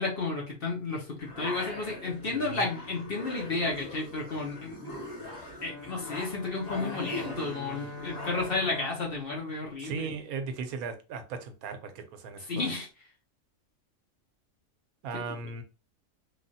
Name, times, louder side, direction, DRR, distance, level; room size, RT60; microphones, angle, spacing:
voice 1, 0.0-4.8 5.6-10.1 12.5-12.9 15.1-15.2, left 3 dB, 50° left, 0.9 m, -32 dB
sound 1, 1.2-8.9, left 1 dB, 20° left, 1.8 m, -41 dB
sound 2, 5.5-10.2, left 2 dB, 70° left, 1.1 m, -45 dB
voice 2, 9.8-12.7 15.0-15.6, right 5 dB, 85° right, 1.1 m, -37 dB
3.1 x 2.3 x 2.7 m
omnidirectional pair, 1.5 m